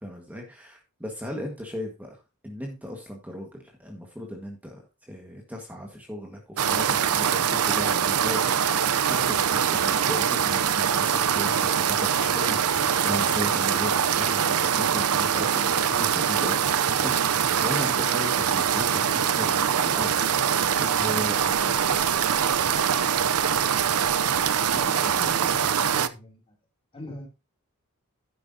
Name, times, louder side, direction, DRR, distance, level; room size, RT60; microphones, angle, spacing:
voice 1, 0.0-22.4, left 1 dB, 5° right, 1 dB, 1.6 m, -37 dB
sound 1, 6.6-26.1, right 8 dB, 80° right, 0.6 m, -23 dB
voice 2, 24.7-26.5 26.9-27.3, left 1 dB, 25° left, 2 dB, 3.1 m, -41 dB
11.5 x 9.4 x 2.8 m, 0.28 s
head